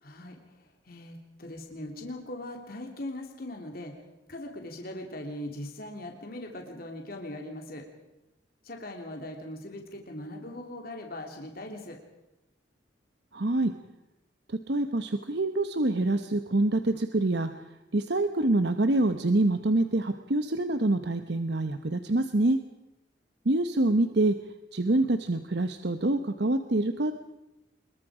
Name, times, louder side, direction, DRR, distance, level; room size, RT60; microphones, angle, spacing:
voice 1, 0.0-7.8 8.6-12.0, left 1 dB, 55° left, 2 dB, 3.1 m, -40 dB
voice 2, 13.3-13.7 14.5-17.5 17.9-22.6 23.4-24.4 24.7-27.1, right 2 dB, 65° right, 8 dB, 1.0 m, -26 dB
26.0 x 22.0 x 5.0 m, 0.93 s
head